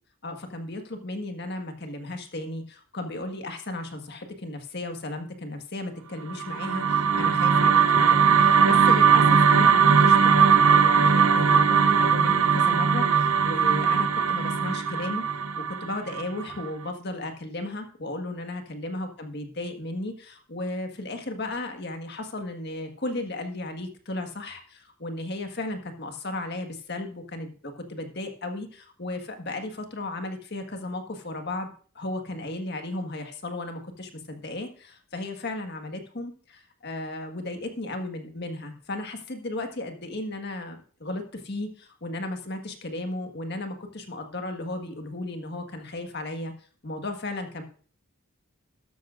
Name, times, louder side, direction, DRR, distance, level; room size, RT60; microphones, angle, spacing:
voice 1, 0.2-15.3 15.6-46.5 46.8-47.6, left 2 dB, 50° left, 5 dB, 1.6 m, -35 dB
sound 1, 6.3-16.6, right 6 dB, 80° right, 0.7 m, -20 dB
13.0 x 12.5 x 2.6 m, 0.43 s
head